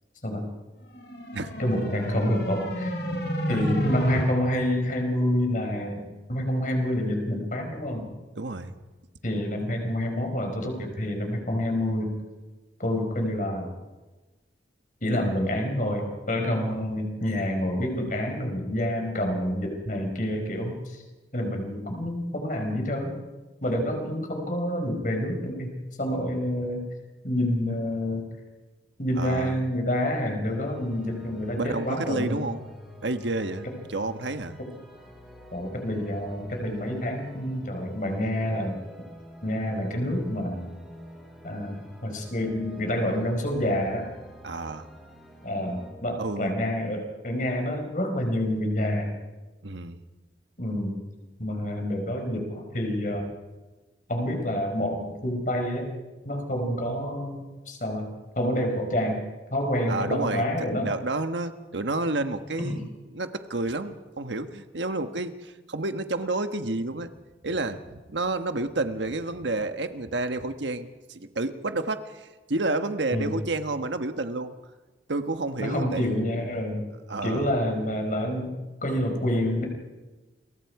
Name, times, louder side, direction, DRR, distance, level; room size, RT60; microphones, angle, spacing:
sound 1, 0.9-4.2, equal, 70° left, 6.5 m, -30 dB
voice 1, 1.6-3.2 3.5-6.0 6.3-8.1 9.2-12.2 12.8-13.7 15.0-21.0 21.3-23.2 23.6-26.9 27.2-28.2 29.0-32.4 34.6-34.7 35.5-38.8 39.4-40.7 41.4-44.1 45.4-49.1 50.6-51.0 51.4-53.3 54.1-55.9 56.2-58.1 58.4-59.2 59.5-60.9 62.6-62.8 73.1-73.3 75.6-76.9 77.2-79.6, left 1 dB, 45° left, 4 dB, 4.9 m, -28 dB
voice 2, 8.4-8.7 29.2-29.6 31.5-32.7 33.0-34.6 44.4-44.9 46.2-46.5 49.6-50.0 59.9-62.9 63.1-67.1 67.4-74.5 75.1-76.2 77.1-77.5, right 2 dB, 85° right, 9 dB, 1.3 m, -30 dB
sound 2, 30.4-45.9, equal, ahead, 6.7 m, -48 dB
29.0 x 23.0 x 4.8 m, 1.2 s
head